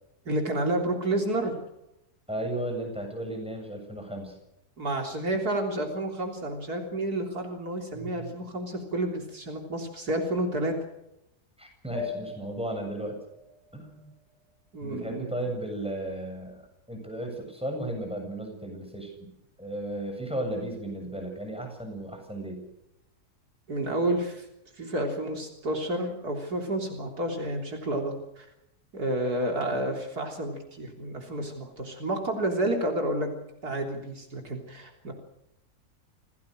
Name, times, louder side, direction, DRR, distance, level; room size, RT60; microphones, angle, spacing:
voice 1, 0.3-1.5 4.8-10.7 14.7-15.3 23.7-24.5 24.8-28.5 28.9-33.3 33.6-35.1, right 1 dB, 75° right, 2 dB, 4.0 m, -30 dB
voice 2, 2.3-4.3 7.9-8.3 11.6-13.2 13.7-14.1 14.8-16.6 16.9-19.3 19.6-22.7, right 1 dB, 5° right, 3 dB, 7.6 m, -35 dB
sound 1, 11.9-14.9, left 5 dB, 40° right, 4.9 m, -41 dB
27.0 x 18.0 x 6.5 m, 0.87 s
omnidirectional pair, 1.7 m